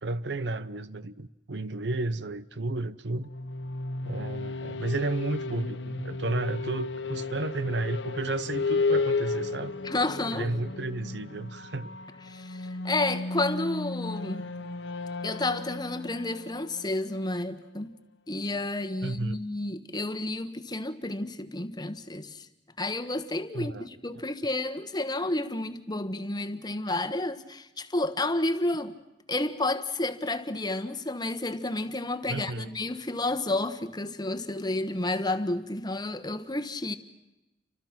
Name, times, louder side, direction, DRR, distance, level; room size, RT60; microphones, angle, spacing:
voice 1, 0.0-3.3 4.0-9.8 10.3-12.0 19.0-19.4 23.5-23.9 24.1-24.2 32.3-32.7, right 2 dB, 70° right, 0.9 m, -32 dB
sound 1, 3.2-17.8, left 3 dB, 85° left, 1.4 m, -34 dB
voice 2, 9.8-10.5 12.3-14.5 15.2-17.9 18.3-22.5 22.8-28.9 29.3-36.9, left 2 dB, 25° left, 1.3 m, -31 dB
30.0 x 25.5 x 6.0 m
head